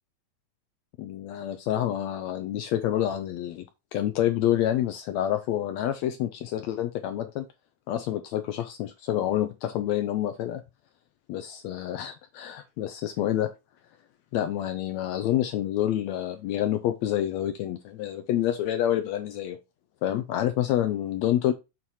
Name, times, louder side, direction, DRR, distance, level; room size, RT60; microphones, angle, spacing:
voice 1, 1.0-3.7 3.9-7.5 7.9-10.6 11.3-13.5 14.3-19.6 20.0-21.5, left 12 dB, 80° left, 1.6 m, -28 dB
7.5 x 4.1 x 4.8 m
omnidirectional pair, 3.8 m